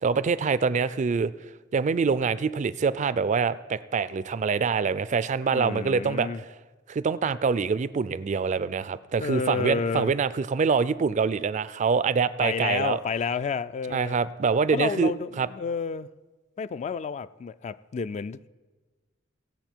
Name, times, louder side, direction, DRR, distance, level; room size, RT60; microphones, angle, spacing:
voice 1, 0.0-1.3 1.7-6.3 6.9-13.0 13.9-15.5, right 5 dB, 40° right, 0.4 m, -25 dB
voice 2, 5.5-6.4 9.2-10.1 12.4-14.2 14.7-16.1 16.6-18.5, left 5 dB, 35° left, 0.3 m, -30 dB
17.5 x 7.3 x 4.5 m
head